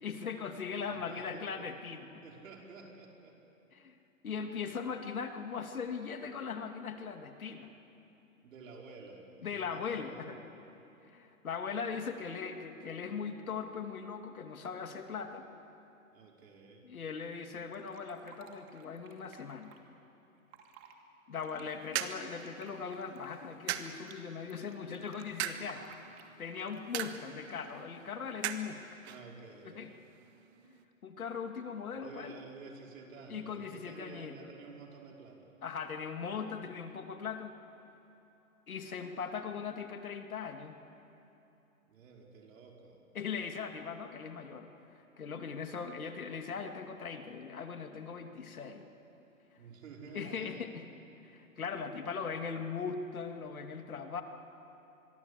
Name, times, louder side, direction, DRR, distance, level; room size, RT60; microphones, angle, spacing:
voice 1, 0.0-2.2 3.7-4.0 4.2-7.7 9.4-10.4 11.0-15.4 16.8-19.7 21.3-25.9 26.4-29.0 29.6-29.9 30.7-32.4 33.3-34.5 35.6-37.5 38.7-40.8 43.1-44.7 45.2-48.9 50.1-50.9 51.2-54.2, left 6 dB, 85° left, 5 dB, 2.6 m, -40 dB
voice 2, 0.9-1.7 2.1-3.4 8.4-10.4 16.1-16.9 29.0-29.8 32.0-35.5 41.9-43.0 49.6-50.7, right 4 dB, 65° right, 0 dB, 5.3 m, -51 dB
Fill (with liquid), 17.7-19.8 20.4-21.0 21.3-24.2 24.5-26.9 27.4-27.8, right 8 dB, 30° right, 2.6 m, -57 dB
sound 1, 21.4-30.8, right 10 dB, 50° right, 1.6 m, -43 dB
25.5 x 22.5 x 8.4 m, 3.0 s
hypercardioid pair, 135°, 42 cm